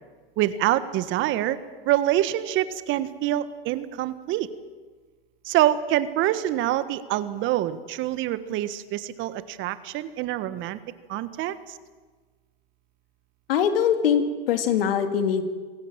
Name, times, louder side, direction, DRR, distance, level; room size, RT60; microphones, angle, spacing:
voice 1, 0.4-1.6 1.8-4.5 5.4-10.8 11.1-11.8, right 13 dB, 40° right, 13 dB, 1.5 m, -25 dB
voice 2, 13.5-15.4, left 8 dB, 75° left, 7 dB, 2.6 m, -22 dB
26.5 x 17.5 x 7.5 m, 1.4 s
hypercardioid pair, 115°, 29 cm